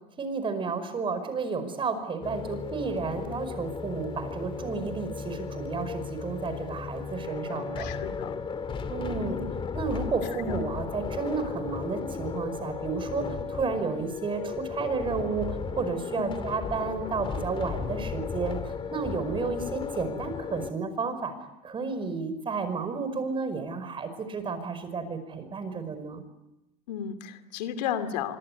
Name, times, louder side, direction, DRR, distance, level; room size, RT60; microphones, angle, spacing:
voice 1, 0.2-7.9 8.9-9.4 9.8-21.3 21.6-26.2, right 5 dB, 25° right, 10 dB, 5.3 m, -32 dB
sound 1, 2.2-20.7, left 5 dB, 25° left, 2.5 m, -35 dB
voice 2, 7.7-8.4 9.3-9.4 10.3-10.6 16.2-16.4 26.9-28.4, left 9 dB, 85° left, 10 dB, 2.7 m, -33 dB
25.5 x 23.5 x 9.7 m, 0.94 s
supercardioid pair, 130°, 21 cm